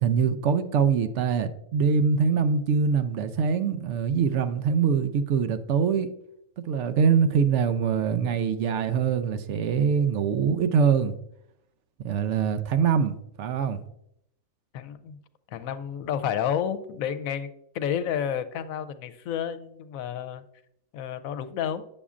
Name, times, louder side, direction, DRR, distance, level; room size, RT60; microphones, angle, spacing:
voice 1, 0.0-6.1 6.6-11.1 12.0-13.8, right 6 dB, 65° right, 10 dB, 0.8 m, -24 dB
voice 2, 14.7-15.2 15.5-17.5 17.7-20.4 20.9-21.8, left 9 dB, 85° left, 11 dB, 1.0 m, -30 dB
8.3 x 7.1 x 2.4 m, 0.76 s
omnidirectional pair, 1.4 m